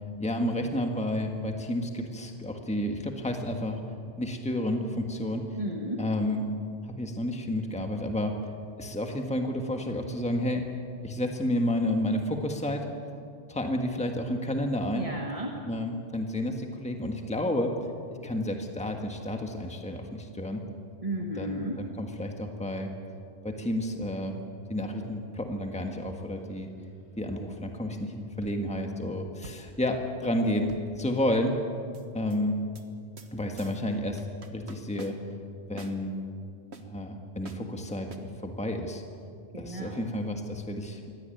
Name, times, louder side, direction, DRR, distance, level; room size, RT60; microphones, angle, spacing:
voice 1, 0.2-3.8 4.2-5.5 6.0-6.4 6.9-8.3 8.8-10.7 11.0-12.9 13.5-15.1 15.7-17.7 18.2-20.6 21.4-22.9 23.4-24.4 24.7-26.7 27.2-31.6 32.1-32.6 33.3-35.2 35.7-36.2 36.8-38.1 38.4-39.0 39.6-41.0, left 1 dB, 5° left, 3 dB, 1.7 m, -30 dB
voice 2, 5.6-6.0 14.9-15.6 21.0-21.8 39.5-40.1, right 1 dB, 30° right, 0 dB, 1.9 m, -34 dB
sound 1, 26.0-26.6 28.4-28.9 29.4-31.5 31.9-32.4 32.8-32.9 33.2-33.3 33.6-33.8 34.2-35.4 35.8-36.0 36.7-36.8 37.4-37.7 38.1-38.2, right 3 dB, 75° right, 1.8 m, -47 dB
23.5 x 17.5 x 9.2 m, 2.4 s
omnidirectional pair, 1.1 m